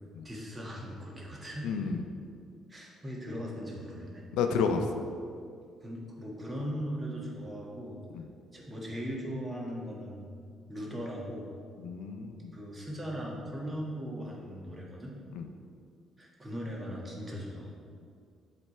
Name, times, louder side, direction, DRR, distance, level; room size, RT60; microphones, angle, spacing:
voice 1, 0.2-1.7 2.7-4.2 5.8-8.0 8.5-10.3 10.7-11.5 12.5-15.2 16.2-17.7, equal, 25° right, -2 dB, 1.4 m, -39 dB
voice 2, 1.6-2.0 4.3-4.9 8.1-8.2 11.8-12.5 15.3-15.5, left 5 dB, 90° left, 6 dB, 0.4 m, -30 dB
7.8 x 3.3 x 4.3 m, 2.3 s
cardioid pair, 85°, 0 cm